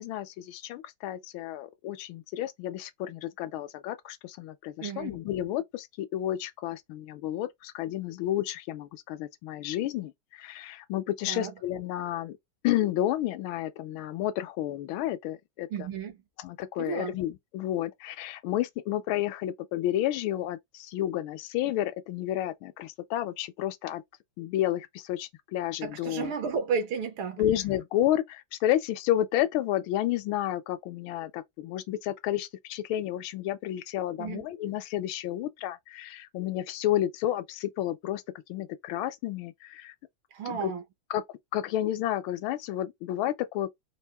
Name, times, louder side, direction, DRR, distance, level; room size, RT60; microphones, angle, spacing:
voice 1, 0.0-12.4 12.6-15.7 16.4-24.0 24.4-26.3 27.4-38.2 38.5-39.9 40.5-40.7 41.1-41.2 41.5-43.7, left 13 dB, 80° left, 1.4 m, -31 dB
voice 2, 4.8-5.2 11.3-11.5 15.7-16.2 16.8-17.2 25.8-27.4 34.2-34.5 40.3-40.8, right 6 dB, 85° right, 1.9 m, -33 dB
4.5 x 2.5 x 3.4 m
omnidirectional pair, 2.2 m